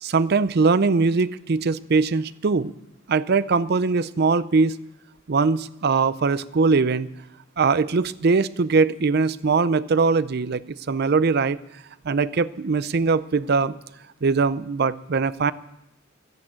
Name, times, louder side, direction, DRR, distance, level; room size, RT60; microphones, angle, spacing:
voice 1, 0.0-2.7 3.1-4.8 5.3-7.1 7.6-11.6 12.0-13.7 14.2-15.5, right 4 dB, 55° right, 16 dB, 0.5 m, -21 dB
13.0 x 10.5 x 8.7 m, 0.87 s
head